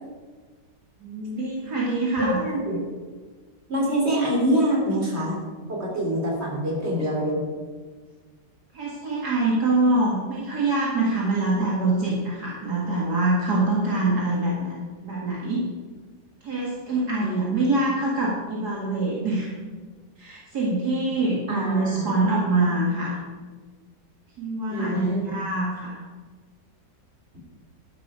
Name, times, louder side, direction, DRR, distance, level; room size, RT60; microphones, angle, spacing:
voice 1, 1.0-2.4 8.7-14.8 15.0-15.6 16.4-19.5 20.2-23.2 24.4-26.0, right 2 dB, 65° right, -5 dB, 2.5 m, -24 dB
voice 2, 2.2-2.8 3.7-5.4 5.7-7.4 17.2-17.6 21.5-22.1 24.7-25.3, equal, 35° right, -2 dB, 3.8 m, -25 dB
12.0 x 11.0 x 5.0 m, 1.4 s
omnidirectional pair, 1.8 m